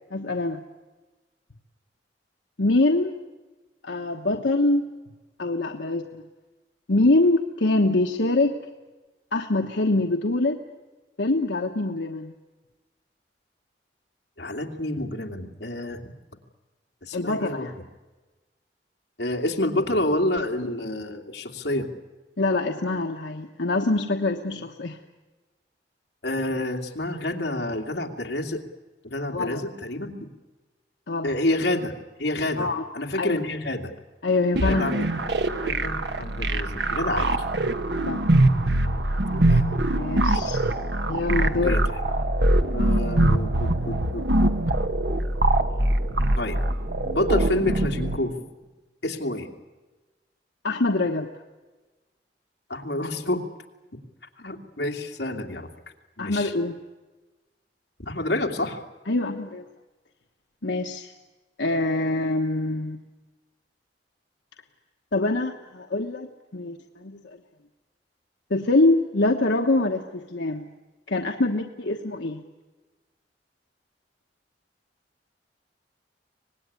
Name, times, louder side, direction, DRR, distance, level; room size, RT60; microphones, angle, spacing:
voice 1, 0.1-0.6 2.6-3.1 3.8-4.8 5.4-6.2 6.9-8.6 9.3-10.6 11.2-12.3 17.1-17.7 22.4-25.0 29.3-29.6 31.1-31.3 32.6-32.9 33.1-33.4 34.2-35.0 38.1-38.2 39.9-40.6 41.1-41.8 50.6-51.3 56.2-56.8 59.1-59.6 60.6-61.1 61.6-63.0 65.1-67.2 68.5-70.7 71.1-72.4, left 2 dB, 90° left, 3 dB, 1.2 m, -24 dB
voice 2, 14.4-16.1 17.0-17.8 19.2-21.9 26.2-28.6 29.0-30.1 31.2-31.9 32.2-32.7 32.9-33.9 34.6-35.1 35.6-37.4 39.3-39.7 40.1-40.5 41.5-41.8 42.7-44.5 46.4-46.6 47.0-48.4 49.0-49.5 52.7-53.4 54.4-55.7 56.2-56.5 58.0-58.8, left 1 dB, 70° left, 2 dB, 2.7 m, -28 dB
sound 1, 34.6-48.2, right 1 dB, 70° right, 1.4 m, -23 dB
25.0 x 19.5 x 9.7 m, 1.2 s
head